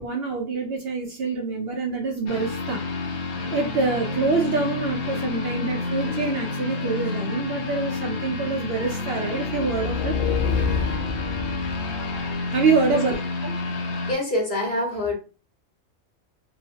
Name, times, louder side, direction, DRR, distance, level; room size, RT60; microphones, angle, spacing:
voice 1, 0.0-10.2 12.5-13.1 13.4-13.5, right 4 dB, 65° right, 1 dB, 0.7 m, -26 dB
sound 1, 2.3-14.1, left 3 dB, 60° left, 0.6 m, -29 dB
Wind instrument woodwind instrument, 3.7-6.6, left 2 dB, 15° left, 1.2 m, -42 dB
sound 2, 9.4-12.3, left 6 dB, 80° left, 1.0 m, -27 dB
voice 2, 14.1-15.2, left 1 dB, 45° left, -1 dB, 1.0 m, -25 dB
2.9 x 2.1 x 2.7 m, 0.33 s
omnidirectional pair, 1.3 m